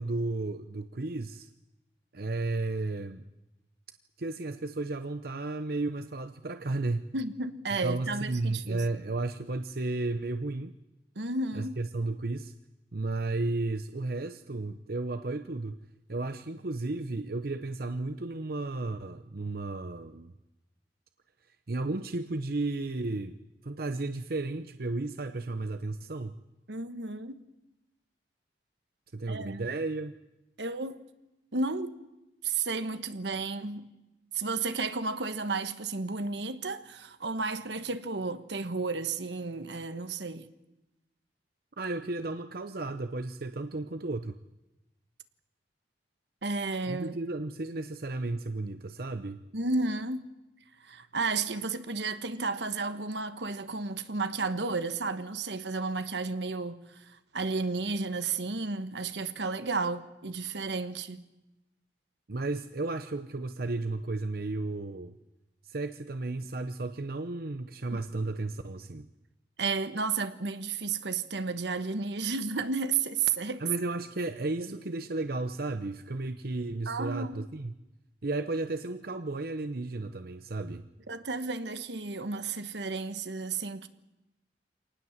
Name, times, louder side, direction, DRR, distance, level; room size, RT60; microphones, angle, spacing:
voice 1, 0.0-1.5 2.1-3.3 4.2-7.1 7.8-10.7 11.5-12.5 12.9-20.3 21.7-26.4 29.1-30.1 41.8-44.4 46.9-49.4 62.3-65.1 65.6-69.1 73.6-77.7 78.2-80.8, right 2 dB, 60° right, 0.8 m, -33 dB
voice 2, 7.1-8.9 11.1-11.8 26.7-27.4 29.3-29.7 30.6-31.0 31.5-32.0 32.4-33.9 34.3-40.5 46.4-47.2 49.5-50.2 50.8-61.2 69.6-73.6 74.6-74.7 76.9-77.5 81.1-83.9, right 4 dB, 80° right, 1.3 m, -32 dB
26.0 x 19.0 x 7.4 m
head